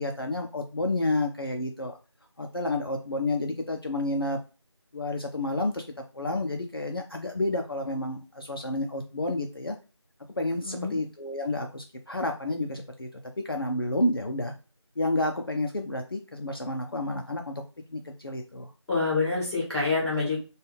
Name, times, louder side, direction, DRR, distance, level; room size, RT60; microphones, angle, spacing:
voice 1, 0.0-2.0 2.4-4.4 4.9-5.8 6.1-9.8 10.4-13.1 13.4-14.5 15.0-17.6 17.9-18.7, left 2 dB, 50° left, 3 dB, 0.4 m, -30 dB
voice 2, 10.6-10.9 18.9-20.4, left 3 dB, ahead, -21 dB, 1.5 m, -26 dB
3.4 x 2.2 x 3.2 m, 0.32 s
figure-of-eight pair, 170°, 16 cm